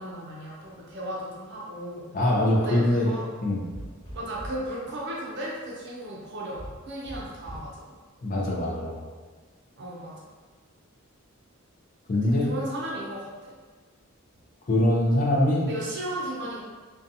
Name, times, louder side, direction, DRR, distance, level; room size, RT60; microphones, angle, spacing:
voice 1, 0.0-2.1 2.5-3.3 4.1-7.8 9.8-10.3 12.2-13.5 15.7-16.6, right 1 dB, 55° right, -5 dB, 0.5 m, -35 dB
voice 2, 2.1-3.1 3.4-3.7 8.2-9.0 12.1-12.5 14.7-15.7, left 1 dB, 40° left, -3 dB, 0.5 m, -23 dB
sound 1, 3.7-4.7 6.6-7.8, equal, 20° left, 1.0 m, -41 dB
2.6 x 2.3 x 2.6 m, 1.4 s
head